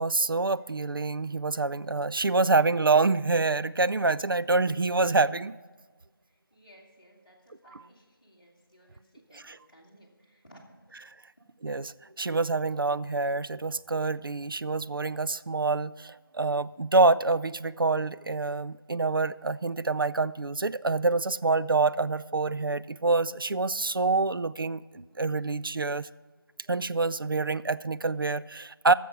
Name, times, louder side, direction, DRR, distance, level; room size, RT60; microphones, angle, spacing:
voice 1, 0.0-5.6 9.5-9.6 11.6-26.1 26.7-28.9, right 3 dB, 65° right, 16 dB, 0.4 m, -26 dB
voice 2, 6.2-10.8 11.1-11.2, equal, 20° left, -7 dB, 1.6 m, -58 dB
14.0 x 7.0 x 6.0 m, 1.4 s
figure-of-eight pair, 175°, 12 cm